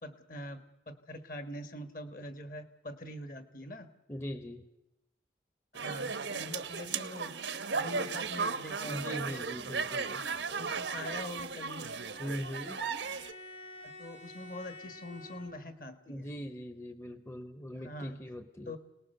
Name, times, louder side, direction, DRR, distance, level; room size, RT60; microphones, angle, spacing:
voice 1, 0.0-3.9 5.7-7.4 7.7-9.2 10.5-11.9 13.8-16.3 17.8-18.2 18.6-18.8, left 1 dB, 50° left, 9 dB, 1.7 m, -44 dB
voice 2, 4.1-4.7 8.8-10.5 12.2-12.8 16.1-18.8, equal, 15° left, 9 dB, 0.9 m, -41 dB
sound 1, 5.7-13.3, right 5 dB, 90° right, 1.2 m, -36 dB
Bowed string instrument, 11.3-15.8, left 1 dB, 65° left, 6.7 m, -51 dB
28.0 x 19.0 x 6.8 m, 0.89 s
head